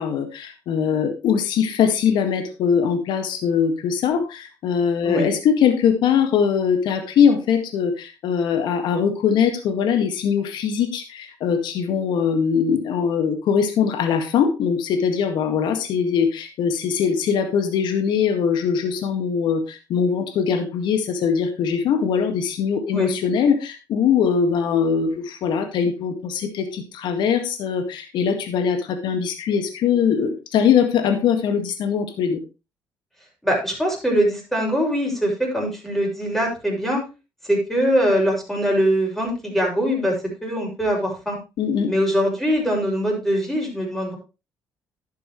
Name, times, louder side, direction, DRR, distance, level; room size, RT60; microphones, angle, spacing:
voice 1, 0.0-32.4 41.6-41.9, left 7 dB, 70° left, 7 dB, 1.9 m, -21 dB
voice 2, 33.4-37.0 37.5-41.4 41.9-44.2, equal, 5° left, 0 dB, 6.6 m, -22 dB
11.5 x 9.4 x 3.2 m, 0.28 s
cardioid pair, 85°, 8 cm